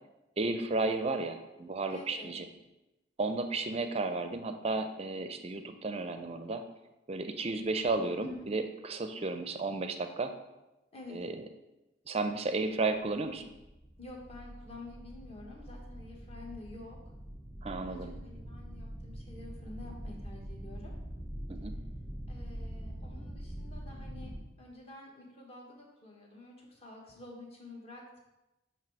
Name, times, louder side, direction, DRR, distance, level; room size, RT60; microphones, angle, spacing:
voice 1, 0.4-2.5 3.2-6.6 7.1-8.6 8.9-10.3 11.1-11.4 12.1-13.4 17.6-18.1 21.5-21.8, right 3 dB, 30° right, 8 dB, 0.5 m, -33 dB
voice 2, 1.9-2.4 8.2-8.5 10.9-11.3 14.0-17.1 17.8-20.9 22.3-28.2, left 2 dB, 30° left, -1 dB, 1.3 m, -49 dB
sound 1, 13.4-24.4, equal, ahead, 0.9 m, -44 dB
9.1 x 3.1 x 4.6 m, 1.0 s
head